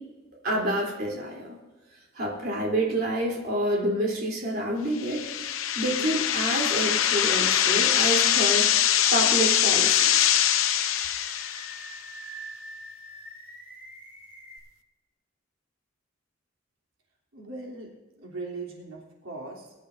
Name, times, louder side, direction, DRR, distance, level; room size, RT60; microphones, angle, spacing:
voice 1, 0.4-1.5 2.1-10.3, right 1 dB, 50° right, -2 dB, 3.5 m, -28 dB
sound 1, 5.0-11.9, left 10 dB, 90° left, 0.7 m, -23 dB
Animal, 6.6-7.0 7.5-7.6 9.2-10.0 10.6-14.6, right 1 dB, 10° right, 4.5 m, -45 dB
voice 2, 17.3-17.9 18.2-19.7, right 3 dB, 90° right, -2 dB, 3.3 m, -39 dB
22.5 x 12.0 x 2.7 m, 1.2 s
head